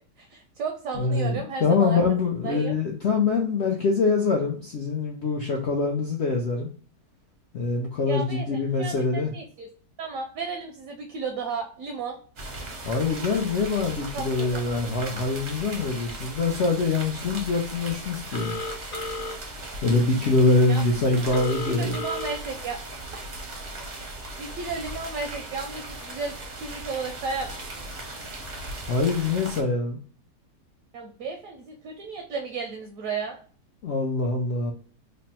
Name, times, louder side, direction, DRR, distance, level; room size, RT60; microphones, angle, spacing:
voice 1, 0.2-2.0 2.4-2.7 8.1-9.7 10.0-12.2 13.9-14.6 20.7-22.8 23.1-23.3 24.0-27.9 30.9-33.4, right 4 dB, 70° right, 4 dB, 0.8 m, -34 dB
voice 2, 0.9-6.7 7.5-9.3 12.8-18.6 19.8-22.0 28.9-30.0 33.8-34.7, left 3 dB, 85° left, 0 dB, 0.6 m, -24 dB
sound 1, 12.4-29.6, right 2 dB, 50° right, 0.5 m, -38 dB
Telephone, 18.3-19.3 21.3-22.3, left 3 dB, 60° left, 1.0 m, -33 dB
3.3 x 2.0 x 4.1 m, 0.42 s
omnidirectional pair, 1.8 m